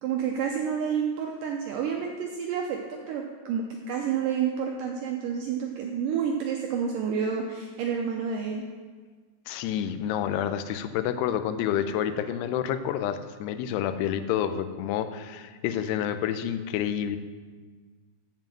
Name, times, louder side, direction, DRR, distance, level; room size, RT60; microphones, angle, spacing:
voice 1, 0.0-8.6, right 7 dB, 80° right, 1 dB, 1.9 m, -29 dB
voice 2, 9.5-17.2, left 9 dB, 90° left, 10 dB, 2.7 m, -29 dB
7.5 x 7.4 x 7.6 m, 1.5 s
omnidirectional pair, 4.6 m